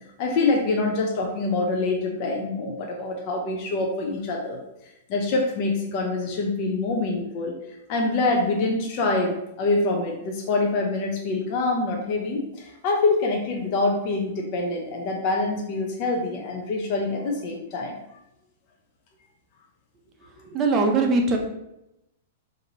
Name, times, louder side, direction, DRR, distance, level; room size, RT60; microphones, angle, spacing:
voice 1, 0.2-4.6 5.1-7.5 7.9-18.0, left 3 dB, 40° left, 0 dB, 0.5 m, -25 dB
voice 2, 20.5-21.4, right 3 dB, 25° right, 3 dB, 0.6 m, -21 dB
3.0 x 2.6 x 3.9 m, 0.86 s
hypercardioid pair, 145°, 0 cm